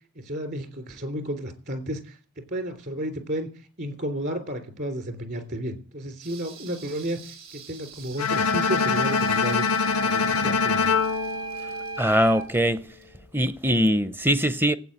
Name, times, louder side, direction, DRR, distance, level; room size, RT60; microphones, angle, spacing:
voice 1, 0.1-3.5 3.8-7.2 7.5-9.7 10.0-10.9, right 1 dB, 45° right, 3.3 m, -32 dB
sound 1, 6.2-13.2 13.6-13.7, right 7 dB, 65° right, 4.5 m, -47 dB
Bowed string instrument, 8.2-12.3, left 5 dB, 90° left, 0.7 m, -24 dB
sound 2, 8.3-12.5, right 6 dB, 80° right, 6.3 m, -35 dB
voice 2, 12.0-12.8 13.3-14.8, equal, 10° right, 0.6 m, -22 dB
15.5 x 8.5 x 8.7 m
head